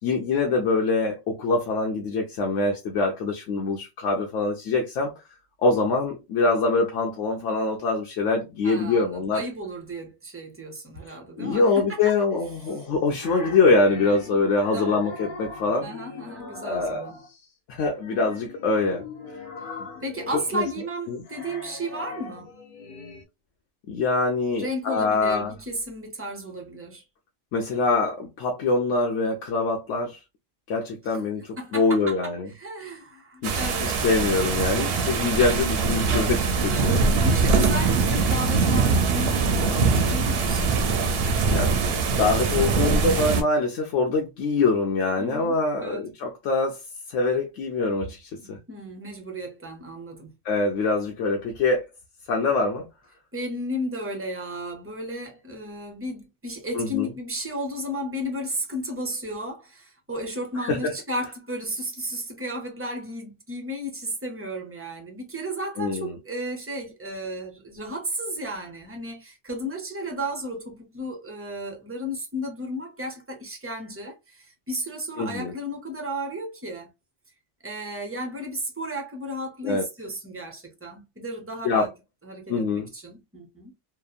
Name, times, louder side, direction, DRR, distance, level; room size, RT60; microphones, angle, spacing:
voice 1, 0.0-5.1 5.6-9.4 11.1-15.9 16.6-17.1 17.7-19.1 20.5-20.6 21.1-21.2 23.9-25.5 27.5-30.2 30.7-32.5 33.4-37.0 41.5-41.7 42.2-46.8 47.1-48.6 50.4-51.9 52.3-52.9 56.7-57.1 60.7-60.9 65.8-66.2 75.2-75.5 79.6-79.8 81.6-81.8 82.5-82.9, left 3 dB, 85° left, 1.0 m, -24 dB
voice 2, 8.6-12.1 14.7-15.0 15.8-17.2 19.6-19.7 20.0-22.5 24.6-27.0 31.1-31.2 31.6-33.9 36.7-40.7 45.2-46.1 48.3-50.3 53.3-76.9 77.6-81.9 82.2-83.7, equal, 15° right, 0.4 m, -34 dB
sound 1, 12.7-17.5 18.0-23.2, left 3 dB, 50° left, 0.7 m, -40 dB
sound 2, 33.4-43.4, right 4 dB, 65° right, 0.7 m, -22 dB
2.9 x 2.1 x 2.3 m
omnidirectional pair, 1.2 m